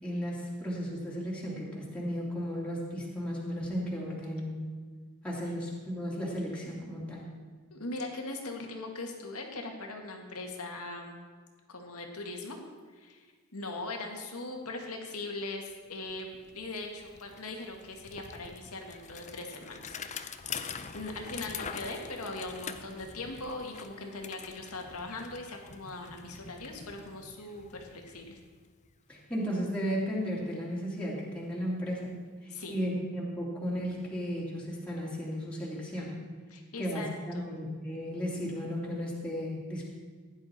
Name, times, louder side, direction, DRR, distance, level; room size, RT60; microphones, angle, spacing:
voice 1, 0.0-4.6 5.2-7.3 29.1-32.1 32.4-36.2 36.8-39.9, equal, 5° left, -6 dB, 2.7 m, -34 dB
voice 2, 7.7-11.2 11.7-12.6 12.9-13.3 13.5-20.0 20.9-28.4 32.5-32.8 36.5-37.1 37.3-37.6, left 2 dB, 75° left, 2 dB, 2.0 m, -40 dB
Bicycle, 15.7-15.8 16.1-29.0, left 6 dB, 35° left, 0.6 m, -45 dB
15.5 x 10.5 x 4.3 m, 1.5 s
head